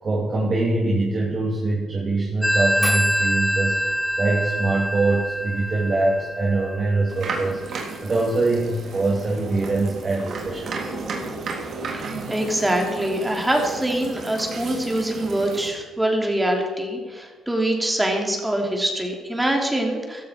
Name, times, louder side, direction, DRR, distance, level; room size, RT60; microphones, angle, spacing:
voice 1, 0.0-10.9, right 2 dB, 40° right, -3 dB, 3.1 m, -23 dB
Telephone, 2.4-7.7, equal, 10° left, 0.9 m, -25 dB
sound 1, 7.1-15.7, right 4 dB, 65° right, 3.4 m, -33 dB
voice 2, 11.9-20.2, right 1 dB, 10° right, 1 dB, 3.2 m, -24 dB
15.5 x 12.0 x 4.6 m, 1.5 s
cardioid pair, 90°, 0 cm